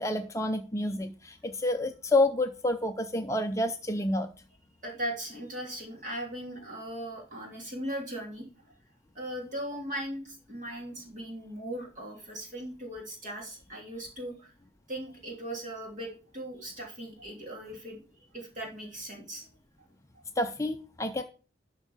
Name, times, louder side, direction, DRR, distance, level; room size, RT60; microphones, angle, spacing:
voice 1, 0.0-4.3 20.4-21.2, left 1 dB, 15° left, 6 dB, 0.5 m, -29 dB
voice 2, 4.8-8.7 9.1-14.5 14.9-18.0 18.3-19.5, right 1 dB, 40° right, 0 dB, 2.9 m, -38 dB
12.0 x 4.4 x 5.5 m, 0.37 s
head